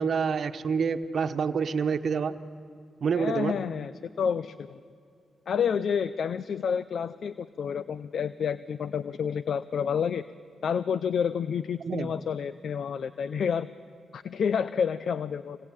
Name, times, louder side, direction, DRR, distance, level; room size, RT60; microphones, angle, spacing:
voice 1, 0.0-2.3 3.0-3.6 11.8-12.1, right 6 dB, 65° right, 9 dB, 1.2 m, -27 dB
voice 2, 3.1-4.8 5.5-10.2 10.6-13.7 14.1-15.6, left 7 dB, 70° left, 15 dB, 0.6 m, -29 dB
26.0 x 21.0 x 8.8 m, 2.5 s
cardioid pair, 55°, 0 cm